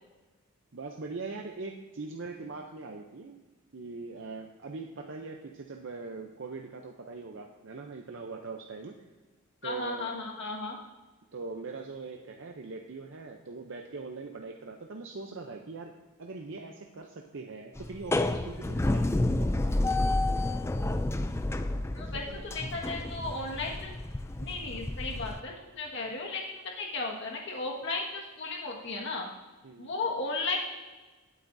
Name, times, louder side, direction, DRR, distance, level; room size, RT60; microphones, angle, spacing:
voice 1, 0.7-3.4 3.7-9.1 9.6-10.2 11.3-19.1 21.7-22.5 29.6-29.9, right 3 dB, 55° right, 2 dB, 0.6 m, -41 dB
voice 2, 9.6-10.8 21.9-23.9 24.4-29.3 29.8-30.6, left 3 dB, 55° left, -1 dB, 1.6 m, -35 dB
sound 1, 17.8-25.4, left 2 dB, 10° left, 0.3 m, -30 dB
17.5 x 8.0 x 2.6 m, 1.3 s
head